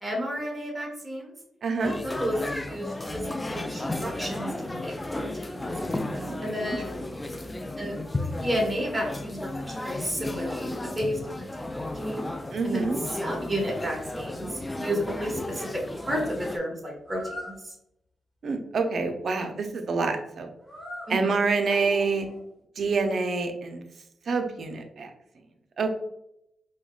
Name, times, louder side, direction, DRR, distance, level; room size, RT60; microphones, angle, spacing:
voice 1, 0.0-1.3 1.8-3.2 3.5-5.6 6.4-6.9 7.8-8.0 8.4-12.2 12.6-12.9 13.2-17.2 17.5-17.7 21.1-21.4, equal, 20° right, -1 dB, 1.3 m, -32 dB
voice 2, 1.6-2.0 6.1-6.4 12.5-13.0 18.4-20.5 21.1-22.3 22.8-23.8 24.3-25.1 25.8-25.9, right 4 dB, 65° right, 5 dB, 0.5 m, -27 dB
sound 1, 1.8-16.6, left 1 dB, 20° left, 0.3 m, -34 dB
sound 2, 12.1-12.3 12.7-13.5 17.0-17.6 20.6-21.1 21.7-22.5, equal, 35° right, 1.5 m, -41 dB
4.7 x 2.1 x 2.3 m, 0.79 s
cardioid pair, 65°, 0 cm